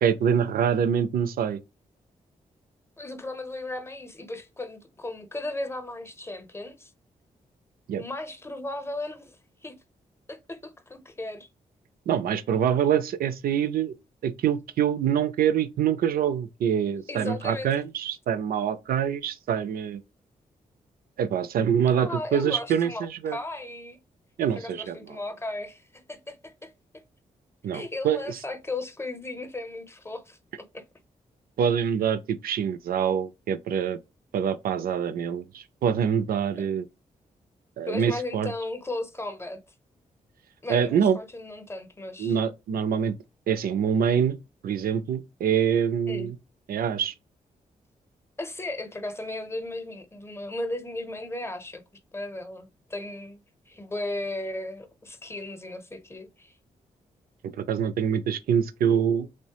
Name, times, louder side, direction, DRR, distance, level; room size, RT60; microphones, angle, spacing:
voice 1, 0.0-1.6 7.9-8.0 12.1-13.9 14.2-20.0 21.2-23.4 24.4-25.2 27.6-28.4 31.6-34.0 34.3-36.9 37.8-38.5 40.7-41.2 42.2-43.1 43.5-44.4 44.6-46.4 46.7-47.1 57.6-59.3, right 8 dB, 75° right, 0.4 m, -25 dB
voice 2, 3.0-6.9 8.0-9.8 10.3-11.5 17.1-17.7 21.9-24.0 24.4-26.7 27.7-30.4 30.7-30.8 36.6-36.7 37.9-39.6 40.6-42.4 46.1-46.3 48.4-51.8 52.1-53.4 53.7-56.6, left 2 dB, 15° left, 0.7 m, -36 dB
3.1 x 2.1 x 2.8 m
supercardioid pair, 45°, 16 cm